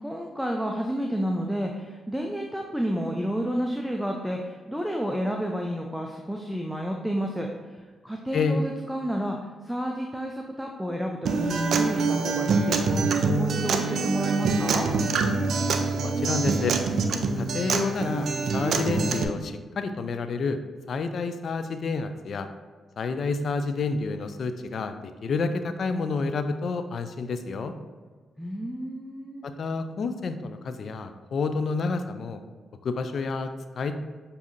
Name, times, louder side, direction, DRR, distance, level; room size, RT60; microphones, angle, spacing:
voice 1, 0.0-9.4 9.6-13.1 13.4-14.9 28.4-29.4, equal, ahead, 1 dB, 0.5 m, -30 dB
voice 2, 8.3-8.6 16.0-16.8 17.3-18.3 18.5-20.6 20.9-22.5 23.0-27.7 29.4-32.4 32.8-34.0, left 4 dB, 60° left, 9 dB, 0.3 m, -29 dB
Acoustic guitar, 11.3-19.2, right 4 dB, 65° right, 0.4 m, -25 dB
6.9 x 2.7 x 2.6 m, 1.4 s
hypercardioid pair, 40°, 0 cm